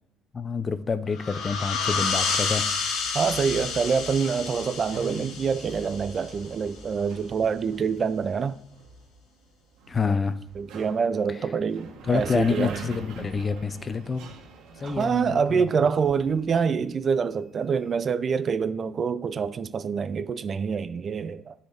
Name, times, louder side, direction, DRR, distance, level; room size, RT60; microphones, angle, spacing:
voice 1, 0.3-2.7 9.9-10.4 12.1-14.3 14.8-15.8, left 5 dB, 25° left, 0.6 m, -27 dB
sound 1, 1.1-6.5, left 5 dB, 70° left, 1.1 m, -30 dB
sound 2, 1.3-16.8, right 3 dB, 80° right, 1.8 m, -45 dB
voice 2, 3.1-8.6 10.6-12.8 14.8-21.5, right 6 dB, 35° right, 0.5 m, -26 dB
9.5 x 4.3 x 4.0 m
cardioid pair, 110°, 0 cm